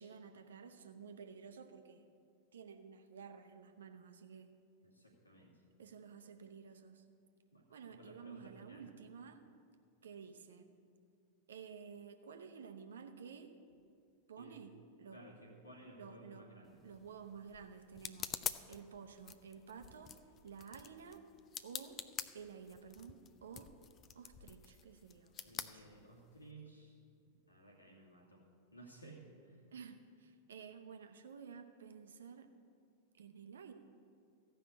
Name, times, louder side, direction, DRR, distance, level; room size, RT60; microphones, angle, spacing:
voice 1, 0.0-2.0 2.5-4.5 5.8-7.0 7.7-9.4 10.0-10.7 11.5-13.5 14.3-14.7 15.0-15.2 15.9-16.5 16.8-21.2 21.6-22.0 22.3-23.7 24.1-25.9 29.7-32.5 33.1-33.7, right 6 dB, 65° right, 7 dB, 0.9 m, -52 dB
voice 2, 4.8-5.6 7.5-8.9 14.4-14.5 15.1-16.8 25.4-27.0 27.5-28.4 28.7-29.6, right 2 dB, 85° left, -2 dB, 2.2 m, -57 dB
sound 1, 16.7-26.5, left 9 dB, 30° left, 0.5 m, -48 dB
14.5 x 5.6 x 8.4 m, 2.4 s
figure-of-eight pair, 90°, 0 cm